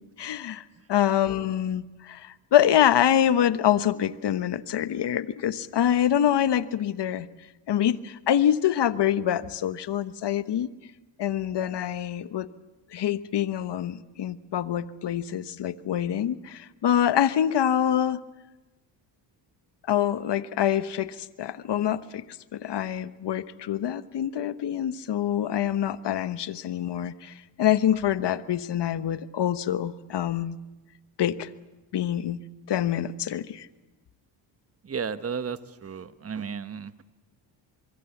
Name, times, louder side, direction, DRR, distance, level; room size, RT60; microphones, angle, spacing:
voice 1, 0.2-0.6 0.9-7.3 7.7-10.7 11.2-12.5 12.9-18.2 19.9-22.2 22.5-30.6 31.2-31.5 31.9-33.7, left 10 dB, 55° left, 14 dB, 1.2 m, -25 dB
voice 2, 34.8-37.0, right 6 dB, 30° right, 12 dB, 1.2 m, -34 dB
24.5 x 23.0 x 7.2 m, 1.1 s
supercardioid pair, 70°, 49 cm